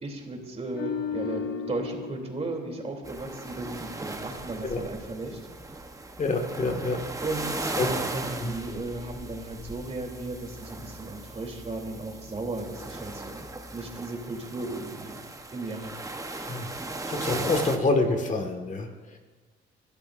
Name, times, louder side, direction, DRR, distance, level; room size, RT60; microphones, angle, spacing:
voice 1, 0.0-5.4 7.2-13.4 13.7-15.2 15.5-15.9, right 2 dB, 30° right, 1 dB, 3.3 m, -35 dB
sound 1, 0.7-4.0 4.3-4.5, left 6 dB, 55° left, 1.3 m, -36 dB
sound 2, 3.0-17.8, right 2 dB, 15° right, 1.1 m, -37 dB
voice 2, 6.2-7.0 7.8-7.9 8.4-8.6 16.4-19.2, left 3 dB, 40° left, 4 dB, 1.9 m, -27 dB
21.0 x 13.0 x 2.7 m, 1.3 s
cardioid pair, 90°, 20 cm